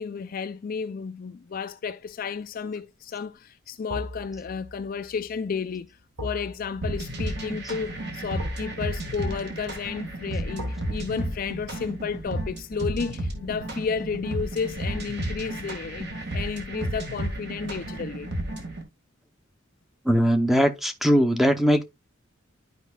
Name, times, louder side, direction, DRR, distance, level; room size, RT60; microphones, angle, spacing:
voice 1, 0.0-18.3, left 5 dB, 45° left, 0.3 m, -32 dB
sound 1, 2.1-2.5 3.9-14.9 15.2-15.4, equal, 80° right, 2.2 m, -42 dB
sound 2, 6.8-18.8, right 1 dB, 55° right, 1.8 m, -32 dB
voice 2, 20.0-21.8, equal, ahead, 0.7 m, -20 dB
12.0 x 5.0 x 2.3 m
head